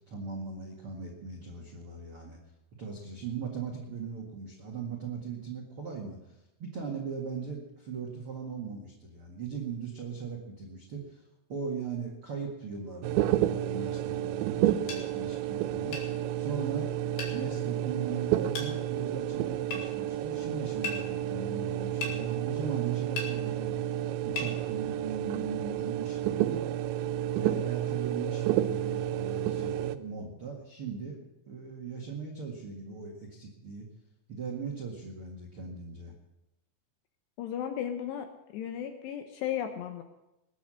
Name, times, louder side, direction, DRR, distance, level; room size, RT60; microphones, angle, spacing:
voice 1, 0.1-2.4 2.8-11.2 11.5-16.0 16.3-16.9 17.3-26.7 27.4-31.2 31.5-33.9 34.3-36.1, right 5 dB, 70° right, 1 dB, 1.3 m, -39 dB
sound 1, 13.0-30.0, right 12 dB, 85° right, 2.6 m, -31 dB
sound 2, 14.9-15.0 15.9-16.1 17.2-17.4 18.5-18.7 19.7-19.8 20.8-21.0 22.0-22.2 23.2-23.3 24.4-24.5, left 3 dB, 60° left, 4.4 m, -35 dB
voice 2, 37.4-38.3 38.5-40.0, left 9 dB, 75° left, 6 dB, 2.6 m, -35 dB
20.0 x 9.6 x 6.3 m, 0.94 s
omnidirectional pair, 5.8 m